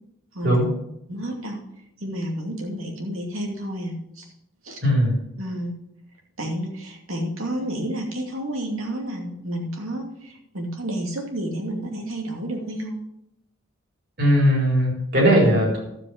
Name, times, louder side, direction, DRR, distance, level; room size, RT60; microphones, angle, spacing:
voice 1, 1.1-1.6 2.0-4.3 4.6-4.8 5.4-5.7 6.4-13.0, right 1 dB, 85° right, 1 dB, 2.5 m, -30 dB
voice 2, 4.8-5.2 14.2-15.8, equal, 50° right, -1 dB, 3.8 m, -18 dB
12.0 x 7.9 x 5.1 m, 0.80 s
head